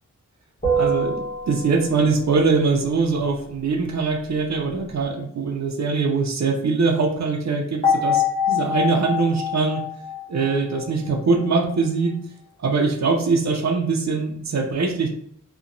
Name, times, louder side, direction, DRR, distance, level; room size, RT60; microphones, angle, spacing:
sound 1, 0.6-2.2 7.8-11.2, left 3 dB, 25° left, 1.0 m, -24 dB
voice 1, 0.8-9.8 10.3-12.2 12.6-15.1, right 4 dB, 60° right, 2 dB, 0.5 m, -22 dB
2.8 x 2.2 x 2.5 m, 0.67 s
wide cardioid pair, 100°, 32 cm